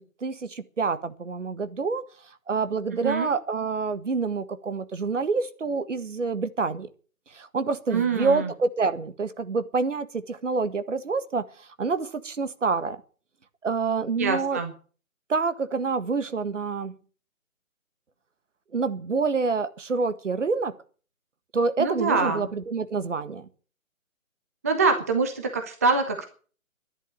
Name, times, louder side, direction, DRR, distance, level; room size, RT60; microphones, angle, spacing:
voice 1, 0.0-2.0 2.5-6.9 7.3-13.0 13.6-14.6 15.3-16.9 18.7-20.7 21.5-23.5, right 4 dB, 60° right, 12 dB, 1.8 m, -27 dB
voice 2, 7.9-8.5 14.2-14.7 21.8-22.5 24.6-26.3, right 4 dB, 10° right, 6 dB, 0.7 m, -24 dB
12.0 x 10.5 x 9.1 m, 0.41 s
figure-of-eight pair, 150°, 41 cm